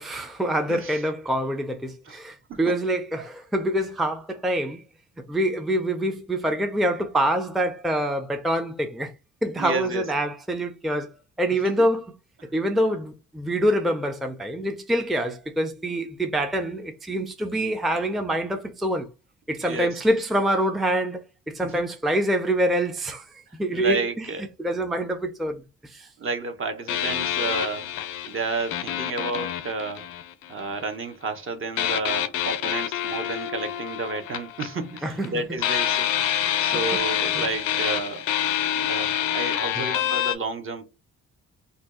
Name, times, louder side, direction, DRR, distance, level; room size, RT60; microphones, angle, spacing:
voice 1, 0.0-4.8 5.3-9.1 9.4-11.1 11.4-12.1 12.5-19.1 19.5-24.3 24.6-26.1 35.0-35.3 37.3-37.5 39.8-39.9, right 1 dB, ahead, 0.4 m, -25 dB
voice 2, 0.7-1.0 2.1-2.2 2.5-2.8 3.2-3.3 9.6-10.1 11.6-11.7 19.6-20.0 21.6-21.8 23.7-24.5 26.2-27.9 28.3-30.1 30.5-38.3 38.7-40.9, right 3 dB, 45° right, 0.8 m, -31 dB
sound 1, 26.9-30.7 31.8-35.3 35.6-40.4, left 11 dB, 90° left, 0.5 m, -27 dB
2.6 x 2.3 x 3.6 m
cardioid pair, 90°, 30 cm